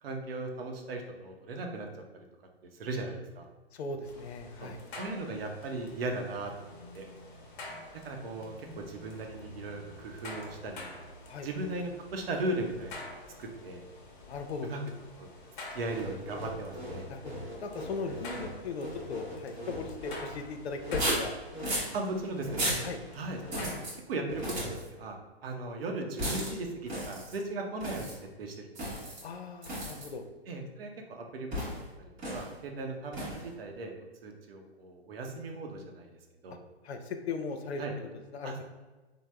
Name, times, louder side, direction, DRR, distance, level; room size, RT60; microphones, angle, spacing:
voice 1, 0.0-1.9 2.8-3.4 4.6-6.7 6.9-7.0 7.9-10.9 11.4-13.8 14.6-14.8 15.2-15.3 15.7-17.1 21.9-22.6 23.1-23.7 24.1-24.5 24.9-25.2 25.4-28.7 30.5-31.6 32.0-33.9 34.2-36.1 36.4-36.6 37.8-37.9 38.4-38.6, right 2 dB, 65° right, 3 dB, 0.7 m, -37 dB
voice 2, 3.7-4.8 11.3-11.5 14.3-14.7 17.1-21.3 22.8-23.0 29.2-30.2 36.5-36.6 36.8-38.6, left 4 dB, 80° left, 6 dB, 0.5 m, -38 dB
sound 1, 4.0-23.8, left 2 dB, 50° left, 0.8 m, -48 dB
sound 2, 15.8-20.2 20.8-21.9 22.4-22.9 23.4-23.9 24.3-24.9 26.2-26.5 26.9-27.4 27.8-28.2 28.7-29.2 29.6-30.1 31.5-31.8 32.2-32.5 33.1-33.5, equal, 20° right, 0.8 m, -35 dB
3.5 x 2.0 x 3.1 m, 1.2 s
hypercardioid pair, 135°, 32 cm